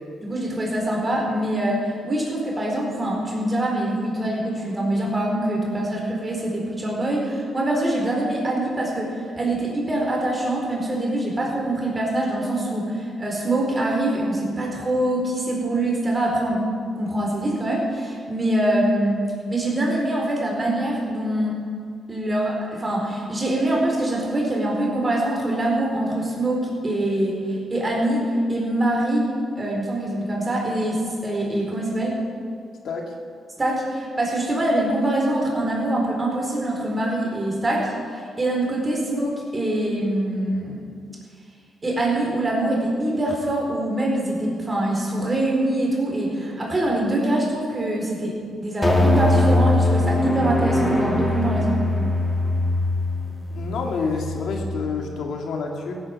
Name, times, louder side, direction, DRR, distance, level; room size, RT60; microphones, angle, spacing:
voice 1, 0.2-16.6 16.9-19.2 19.5-21.5 22.1-32.3 33.6-40.8 41.8-51.8, right 1 dB, 25° right, -1 dB, 4.4 m, -24 dB
sound 1, 48.8-55.3, left 2 dB, 10° left, 2.2 m, -22 dB
voice 2, 53.5-56.0, left 4 dB, 70° left, 2 dB, 2.1 m, -28 dB
16.0 x 10.0 x 7.3 m, 2.2 s
cardioid pair, 110°, 0 cm